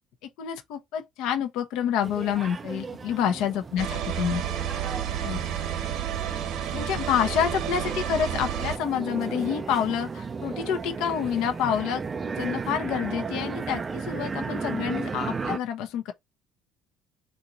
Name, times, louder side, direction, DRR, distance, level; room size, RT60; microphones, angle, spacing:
voice 1, 0.2-4.4 5.2-5.4 6.7-12.0 12.4-16.1, left 9 dB, 70° left, 1.0 m, -28 dB
sound 1, 2.0-15.6, right 5 dB, 20° right, 0.4 m, -35 dB
sound 2, 3.8-8.8, right 9 dB, 65° right, 1.0 m, -30 dB
4.4 x 2.8 x 4.1 m
cardioid pair, 145°, 0 cm